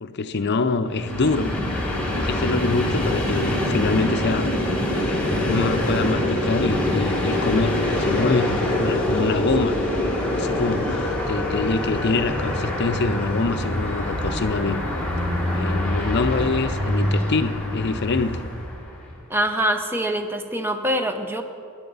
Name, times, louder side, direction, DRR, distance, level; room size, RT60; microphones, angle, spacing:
voice 1, 0.0-1.5 2.1-4.5 5.0-9.8 10.2-14.8 15.5-18.4, left 3 dB, 50° left, 10 dB, 0.6 m, -25 dB
Train, 0.9-19.0, left 1 dB, 5° left, 2.0 m, -25 dB
voice 2, 19.3-21.4, right 1 dB, 10° right, 6 dB, 0.8 m, -24 dB
18.5 x 10.5 x 4.0 m, 2.3 s
head